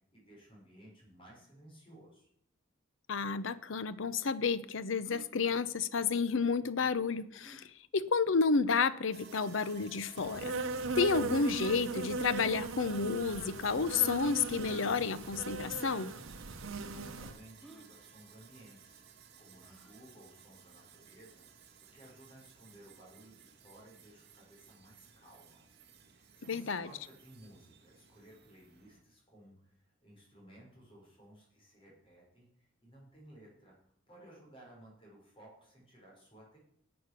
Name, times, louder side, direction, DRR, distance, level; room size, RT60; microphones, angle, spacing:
voice 1, 0.0-2.3 16.9-21.7 21.9-25.6 26.0-33.7 34.1-36.6, right 1 dB, 25° left, -3 dB, 5.4 m, -57 dB
voice 2, 3.1-7.7 7.9-10.5 11.0-16.1 26.5-26.9, left 5 dB, 70° left, 15 dB, 0.7 m, -31 dB
sound 1, 5.0-5.3 7.4-7.7 8.5-8.6 9.4-9.7 11.7-12.0 13.1-13.2 14.6-15.0 15.9-16.0 16.3-16.4 17.6-17.9 19.6-20.0, right 2 dB, ahead, 1.1 m, -55 dB
Sawing, 9.1-29.0, right 7 dB, 55° right, 1.4 m, -57 dB
Insect, 10.2-17.4, right 3 dB, 85° right, 1.0 m, -38 dB
10.5 x 7.9 x 6.7 m, 0.71 s
head